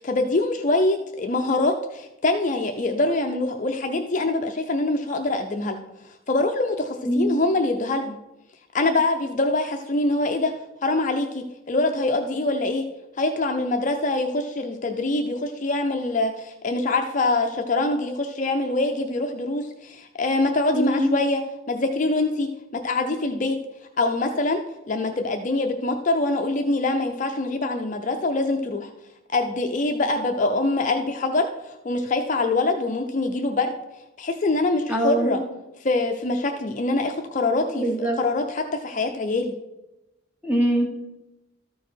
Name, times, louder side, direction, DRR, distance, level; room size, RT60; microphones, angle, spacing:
voice 1, 0.0-5.8 6.3-8.2 8.7-10.5 10.8-12.8 13.2-21.4 21.7-22.5 22.8-23.6 24.0-24.6 24.9-28.9 29.3-33.7 34.2-35.4 35.8-39.5, left 2 dB, 35° left, 4 dB, 0.5 m, -24 dB
voice 2, 7.0-7.4 20.7-21.1 34.9-35.3 37.7-38.2 40.4-40.9, right 1 dB, 5° right, 1 dB, 1.1 m, -23 dB
13.5 x 4.6 x 4.5 m, 0.98 s
head